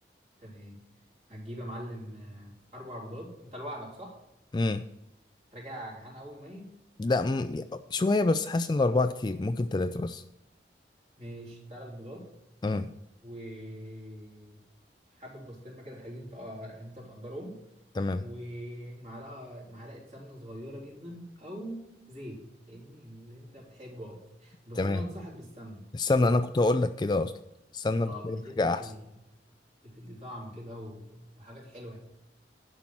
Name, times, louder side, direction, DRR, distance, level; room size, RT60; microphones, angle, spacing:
voice 1, 0.4-0.9 1.3-4.2 5.5-6.8 11.2-12.3 13.2-14.6 15.1-17.6 18.2-25.9 26.2-26.4 28.0-29.0 29.8-32.0, equal, 40° right, -2 dB, 3.5 m, -43 dB
voice 2, 4.5-4.8 7.0-10.2 12.6-12.9 18.0-18.2 24.8-25.0 25.9-27.3 27.7-28.8, left 2 dB, 25° left, 10 dB, 0.3 m, -27 dB
11.5 x 5.6 x 7.5 m, 0.90 s
head